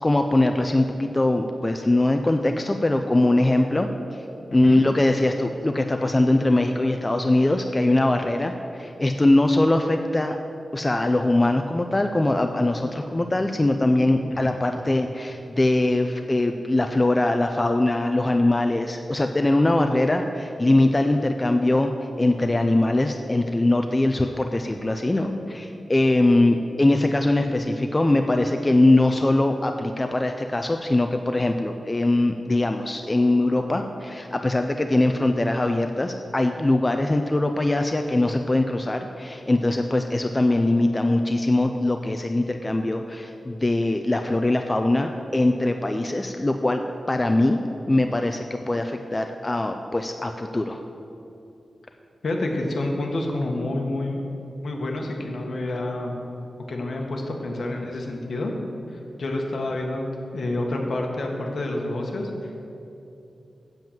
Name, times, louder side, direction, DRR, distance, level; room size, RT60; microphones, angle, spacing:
voice 1, 0.0-3.9 4.5-10.4 10.7-21.9 22.2-46.8 47.1-47.6 47.9-50.8, left 2 dB, 20° left, 5 dB, 0.4 m, -22 dB
voice 2, 4.5-4.8 14.3-14.5 52.2-54.2 54.6-56.1 56.7-58.5 58.9-60.0 60.3-62.5, left 2 dB, 60° left, 1 dB, 1.3 m, -28 dB
7.8 x 7.6 x 7.2 m, 2.8 s
wide cardioid pair, 150°, 0 cm